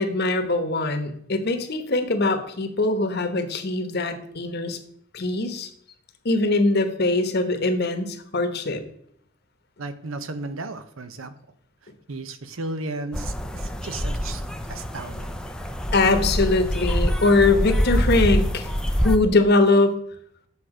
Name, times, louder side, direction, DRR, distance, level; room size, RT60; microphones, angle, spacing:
voice 1, 0.0-4.8 5.1-5.7 6.2-8.8 15.9-18.7 19.0-20.0, left 2 dB, 50° left, 7 dB, 1.1 m, -22 dB
voice 2, 9.8-11.3 11.8-15.3, right 2 dB, 75° right, 11 dB, 0.8 m, -35 dB
sound 1, 13.1-19.2, equal, 5° left, 0.6 m, -25 dB
8.3 x 6.7 x 4.9 m, 0.69 s
head